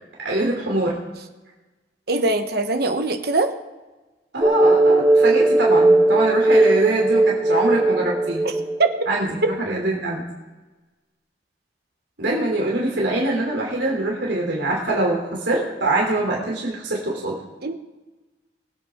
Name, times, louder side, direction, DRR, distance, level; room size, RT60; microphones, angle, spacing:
voice 1, 0.2-1.0 4.3-8.5 9.1-10.2 12.2-17.4, right 2 dB, 80° right, -2 dB, 3.2 m, -23 dB
voice 2, 2.1-3.5 8.8-8.9 17.6-17.8, right 3 dB, 60° right, 7 dB, 1.2 m, -21 dB
sound 1, 4.4-9.1, right 2 dB, 15° right, 1.1 m, -17 dB
22.5 x 8.4 x 3.7 m, 1.2 s
head